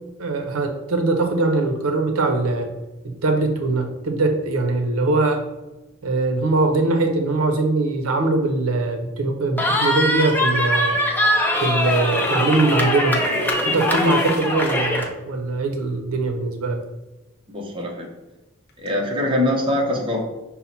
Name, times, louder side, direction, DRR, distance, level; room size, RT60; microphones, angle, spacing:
voice 1, 0.2-2.7 3.0-5.4 6.0-11.0 11.6-13.3 13.6-16.8, right 3 dB, 85° right, 5 dB, 0.6 m, -21 dB
Cheering, 9.6-15.1, left 1 dB, 10° left, 0.5 m, -22 dB
sound 1, 11.2-14.9 18.7-18.9, equal, 50° left, 0.7 m, -33 dB
voice 2, 17.5-18.1 18.8-20.2, left 1 dB, 25° right, -1 dB, 0.7 m, -23 dB
5.5 x 2.0 x 4.1 m, 1.1 s
head